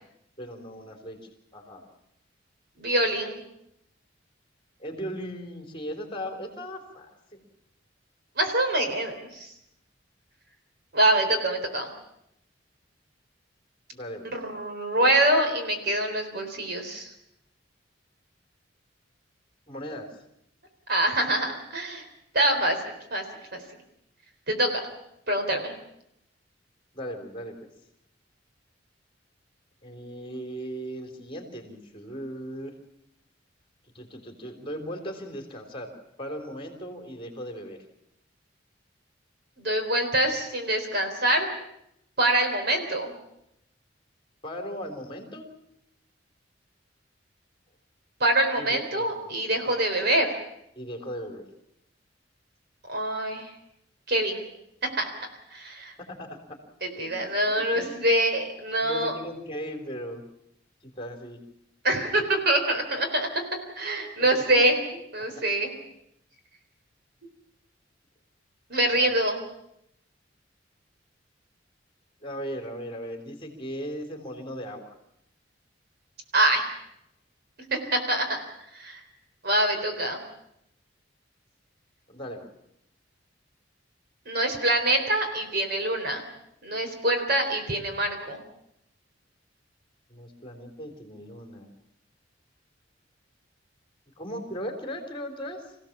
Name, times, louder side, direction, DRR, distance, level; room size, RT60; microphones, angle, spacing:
voice 1, 0.4-1.2 1.5-1.9 4.8-7.4 13.9-14.3 19.7-20.1 26.9-27.6 29.8-32.7 33.9-35.9 36.2-37.8 44.4-45.4 48.6-49.3 49.6-49.9 50.8-51.5 56.0-56.4 57.0-57.1 57.7-57.9 58.8-60.2 61.0-61.4 68.9-69.2 72.2-74.9 82.1-82.5 90.1-91.7 94.2-95.6, equal, 30° left, 5 dB, 3.6 m, -37 dB
voice 2, 2.8-3.4 8.4-9.5 10.9-11.9 14.2-17.1 20.9-22.0 22.3-22.8 23.1-23.2 23.5-23.6 24.5-24.7 25.3-25.7 39.6-41.5 42.2-43.1 48.2-50.4 52.9-53.5 54.1-54.5 55.0-55.1 55.5-55.9 56.8-59.1 61.8-63.3 63.8-64.8 65.1-65.7 68.7-69.4 76.3-76.6 77.7-78.4 78.7-79.0 79.4-80.2 84.3-86.2 86.6-88.4, right 1 dB, 60° right, 5 dB, 4.1 m, -25 dB
26.5 x 16.5 x 7.3 m, 0.80 s
head